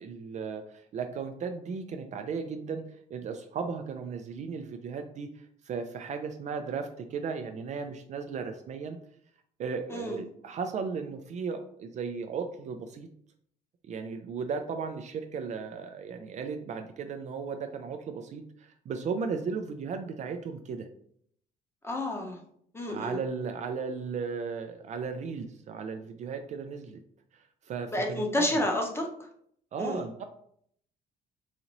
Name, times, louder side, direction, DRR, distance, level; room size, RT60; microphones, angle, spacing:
voice 1, 0.0-9.0 9.6-13.1 13.9-20.9 22.9-27.0 27.3-28.6 29.7-30.2, right 5 dB, 45° right, 6 dB, 0.4 m, -36 dB
voice 2, 21.8-22.4 22.7-23.2 27.9-29.3 29.8-30.1, left 1 dB, 15° left, 1 dB, 0.8 m, -30 dB
4.0 x 2.5 x 3.0 m, 0.65 s
cardioid pair, 110°, 17 cm